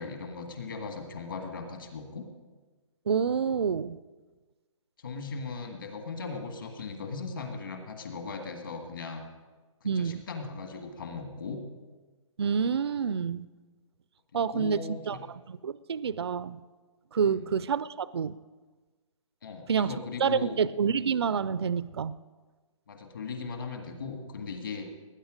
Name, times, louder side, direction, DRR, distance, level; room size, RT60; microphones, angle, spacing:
voice 1, 0.0-2.3 5.0-9.3 9.8-11.6 14.3-15.2 17.3-17.5 19.4-20.6 22.9-24.9, left 4 dB, 40° left, 4 dB, 1.8 m, -38 dB
voice 2, 3.1-4.0 9.8-10.2 12.4-13.5 14.3-14.8 15.1-15.2 15.5-16.6 17.1-18.4 19.7-19.9 20.2-22.1, right 6 dB, 50° right, 17 dB, 0.4 m, -28 dB
19.5 x 9.7 x 5.1 m, 1.3 s
hypercardioid pair, 180°, 17 cm